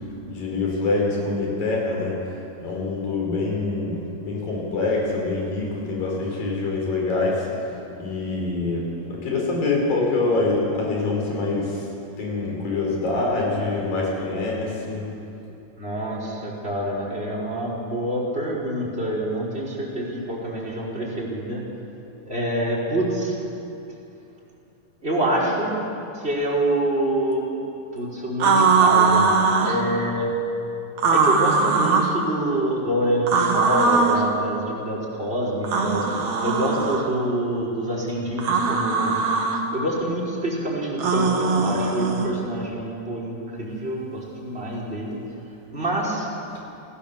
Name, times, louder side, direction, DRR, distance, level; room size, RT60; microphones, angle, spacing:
voice 1, 0.3-2.1 2.6-7.5 8.0-11.9 12.2-15.1, left 3 dB, 80° left, -1 dB, 6.5 m, -25 dB
voice 2, 15.7-21.6 22.2-23.3 25.0-25.7 26.1-27.5 27.9-29.3 29.6-30.3 31.1-36.1 36.4-39.2 39.7-45.2 45.7-46.3, right 1 dB, 15° right, -3 dB, 5.0 m, -26 dB
sound 1, 28.4-29.8 31.0-32.1 33.3-34.3 35.6-37.1 38.4-39.6 41.0-42.3, right 4 dB, 60° right, 3.0 m, -20 dB
28.0 x 17.0 x 7.4 m, 2.8 s
omnidirectional pair, 3.9 m